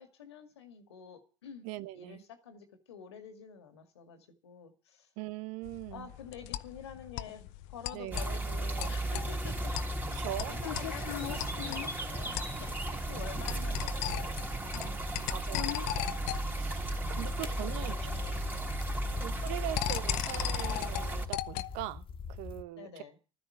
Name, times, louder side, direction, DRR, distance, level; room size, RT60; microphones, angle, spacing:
voice 1, 0.0-1.6 1.9-5.1 5.9-9.7 10.1-12.8 13.0-15.7 17.2-19.1 22.8-23.2, left 7 dB, 90° left, 2.1 m, -49 dB
voice 2, 1.6-2.2 5.2-6.1 7.9-8.3 10.2-10.5 13.1-13.3 15.3-16.2 16.5-17.9 19.0-23.0, right 15 dB, 70° right, 0.9 m, -41 dB
sound 1, 5.7-21.8, left 16 dB, 70° left, 0.7 m, -39 dB
sound 2, 8.1-21.3, right 1 dB, 15° right, 3.1 m, -35 dB
sound 3, 16.7-22.6, left 5 dB, 40° left, 1.6 m, -44 dB
12.5 x 10.0 x 8.6 m
hypercardioid pair, 65°, 13 cm